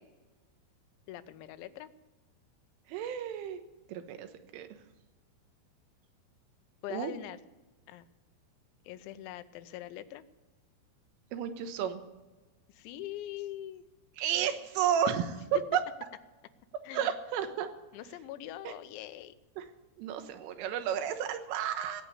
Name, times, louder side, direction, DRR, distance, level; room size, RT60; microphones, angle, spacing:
voice 1, 1.1-1.9 6.8-7.4 7.9-8.1 8.8-10.2 12.7-13.8 16.8-17.1 17.9-19.4, left 13 dB, 80° left, 11 dB, 2.8 m, -43 dB
voice 2, 2.9-3.6 3.9-4.3 4.5-4.7 6.9-7.1 11.3-12.0 14.2-15.4 15.7-15.8 16.9-17.7 18.7-18.8 19.6-19.7 20.0-22.0, right 9 dB, 80° right, 8 dB, 3.6 m, -32 dB
17.5 x 8.4 x 8.3 m, 1.2 s
omnidirectional pair, 5.9 m